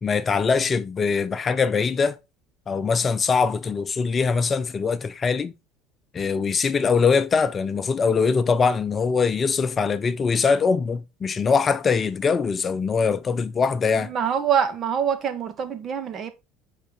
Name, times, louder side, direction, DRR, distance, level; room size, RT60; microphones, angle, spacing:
voice 1, 0.0-2.2 2.7-5.5 6.1-14.1, left 5 dB, 35° left, 0.7 m, -22 dB
voice 2, 14.0-16.3, right 8 dB, 45° right, 1.7 m, -25 dB
8.7 x 5.0 x 3.9 m
hypercardioid pair, 70°, 0 cm